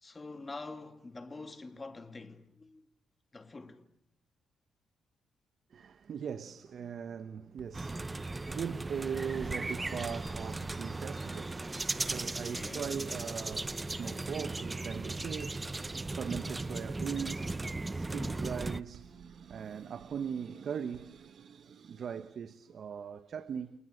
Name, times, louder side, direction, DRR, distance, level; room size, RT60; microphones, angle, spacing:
voice 1, 0.0-2.8 3.3-3.8 12.5-13.0 18.1-18.4, left 3 dB, 25° left, 2.5 m, -46 dB
voice 2, 5.7-23.7, right 7 dB, 55° right, 1.1 m, -40 dB
Writing, 7.6-11.5 12.0-12.4 13.1-20.4 20.9-21.1, right 8 dB, 85° right, 4.5 m, -59 dB
sound 1, 7.7-18.8, right 2 dB, 20° right, 0.9 m, -37 dB
28.0 x 20.0 x 7.9 m
cardioid pair, 90°, 0 cm